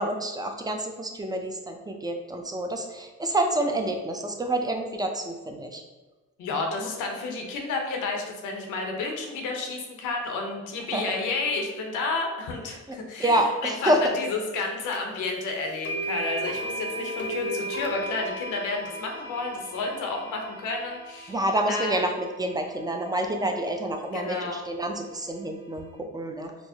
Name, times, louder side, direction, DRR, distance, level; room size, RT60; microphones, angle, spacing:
voice 1, 0.0-5.8 10.9-11.0 13.2-14.0 21.3-22.1 22.4-25.9 26.1-26.5, right 1 dB, 15° right, 3 dB, 0.4 m, -28 dB
voice 2, 6.4-21.4 21.7-21.9 24.1-24.6, left 3 dB, 85° left, 2 dB, 0.8 m, -31 dB
sound 1, 14.9-15.0 15.8-23.9, right 2 dB, 40° left, 0.6 m, -36 dB
4.5 x 2.0 x 2.7 m, 1.2 s
cardioid pair, 90°, 30 cm